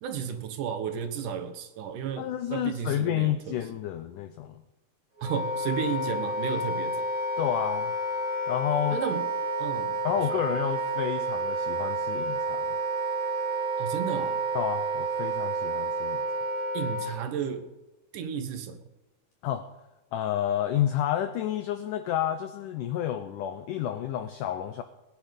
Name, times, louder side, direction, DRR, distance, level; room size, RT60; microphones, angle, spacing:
voice 1, 0.0-3.6 5.2-7.0 8.9-9.2 9.6-10.0 13.8-14.4 16.7-17.6 18.1-18.8, right 7 dB, 65° right, 8 dB, 2.4 m, -33 dB
voice 2, 2.2-4.6 7.4-7.9 8.5-9.0 10.0-12.7 14.5-16.2 19.4-19.7 20.1-24.8, left 11 dB, 80° left, 9 dB, 1.9 m, -30 dB
Wind instrument woodwind instrument, 5.2-17.1, right 2 dB, 20° right, 2.4 m, -30 dB
20.5 x 9.9 x 5.2 m, 1.1 s
omnidirectional pair, 4.5 m